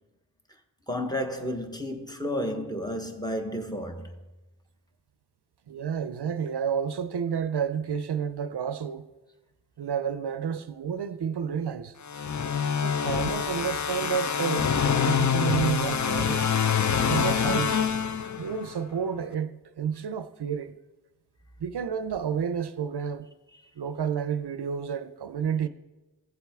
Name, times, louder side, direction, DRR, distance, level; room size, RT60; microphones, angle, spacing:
voice 1, 0.9-4.1, equal, 10° left, 1.0 m, -32 dB
voice 2, 5.7-9.1 9.8-12.0 12.8-16.5 17.1-17.8 18.4-20.7 21.6-23.3 23.8-25.7, right 7 dB, 70° right, 0.5 m, -30 dB
sound 1, 12.1-18.7, left 7 dB, 45° left, 0.5 m, -26 dB
15.0 x 7.4 x 3.5 m
wide cardioid pair, 70°, 42 cm